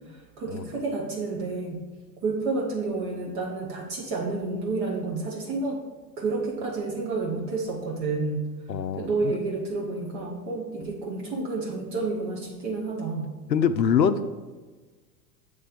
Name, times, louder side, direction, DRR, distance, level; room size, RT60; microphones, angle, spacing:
voice 1, 0.1-1.8 2.2-5.8 6.2-8.5 8.9-13.4, right 3 dB, 15° right, -2 dB, 0.3 m, -30 dB
voice 2, 8.7-9.4 13.5-14.2, left 7 dB, 80° left, 11 dB, 0.6 m, -24 dB
7.9 x 3.4 x 5.1 m, 1.3 s
figure-of-eight pair, 90°, 50 cm